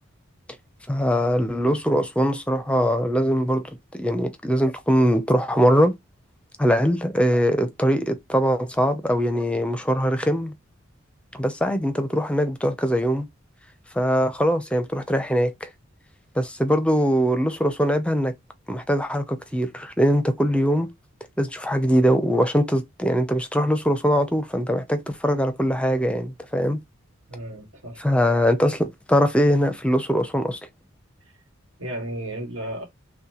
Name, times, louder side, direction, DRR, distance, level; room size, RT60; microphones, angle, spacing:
voice 1, 0.9-5.9 6.6-10.5 11.3-13.3 13.9-15.7 16.4-18.3 18.7-20.9 21.4-26.8 28.0-30.6, equal, 5° left, 0.5 m, -22 dB
voice 2, 27.3-28.0 31.8-32.8, right 1 dB, 75° right, 1.7 m, -33 dB
5.6 x 2.2 x 2.9 m
head